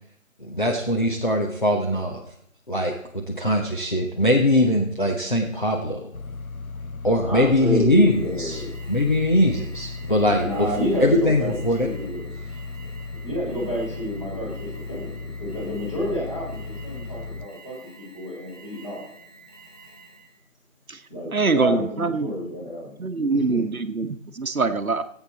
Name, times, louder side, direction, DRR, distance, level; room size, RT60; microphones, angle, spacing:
voice 1, 0.4-2.2 2.7-6.0 7.0-8.6 8.9-10.7 11.0-11.9, left 1 dB, 35° left, 0 dB, 0.9 m, -21 dB
sound 1, 6.1-17.5, left 3 dB, 90° left, 0.9 m, -36 dB
voice 2, 7.2-8.7 10.4-12.3 13.1-19.1 21.1-22.9 23.3-23.6, equal, 20° left, -7 dB, 3.9 m, -29 dB
Alarm, 8.0-20.4, right 3 dB, 15° right, 3.3 m, -49 dB
voice 3, 21.3-22.3 23.0-25.0, right 4 dB, 85° right, 10 dB, 1.0 m, -24 dB
15.5 x 8.2 x 4.1 m, 0.75 s
figure-of-eight pair, 170°, 41 cm